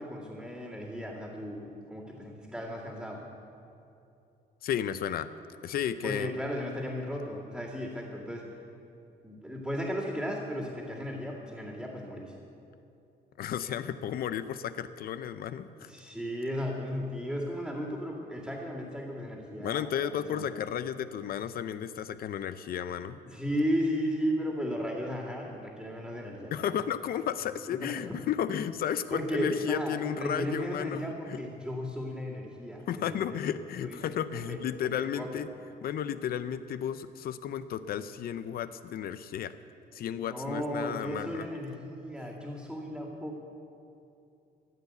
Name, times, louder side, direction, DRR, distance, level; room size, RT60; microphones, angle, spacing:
voice 1, 0.0-3.2 6.0-8.6 9.2-12.3 15.8-20.5 23.2-26.5 27.8-27.9 29.1-33.5 33.8-34.0 34.3-34.6 35.0-35.4 40.2-43.4, equal, ahead, -9 dB, 2.2 m, -35 dB
voice 2, 4.6-5.3 5.6-6.3 13.4-15.9 19.6-23.2 26.5-31.0 31.3-31.4 32.9-35.5 35.8-39.5 39.9-41.5, left 9 dB, 60° left, 12 dB, 0.5 m, -33 dB
14.5 x 8.3 x 8.1 m, 2.7 s
cardioid pair, 145°, 17 cm